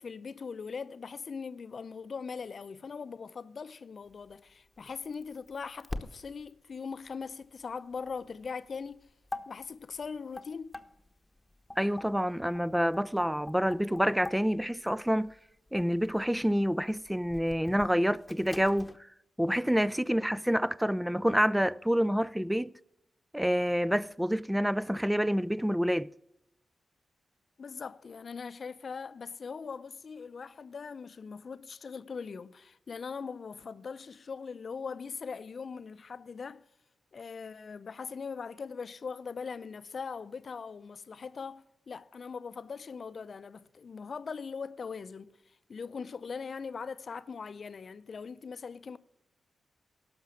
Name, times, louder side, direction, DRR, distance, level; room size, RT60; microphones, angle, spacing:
voice 1, 0.0-9.1 9.5-10.8 27.6-36.6 37.1-49.0, left 5 dB, 60° left, 0.5 m, -41 dB
sound 1, 4.0-19.0, left 2 dB, 20° left, 1.0 m, -47 dB
voice 2, 11.8-15.3 15.7-19.1 19.4-22.7 23.3-26.1, equal, 5° right, 0.3 m, -28 dB
12.0 x 6.0 x 8.5 m
supercardioid pair, 40°, 0 cm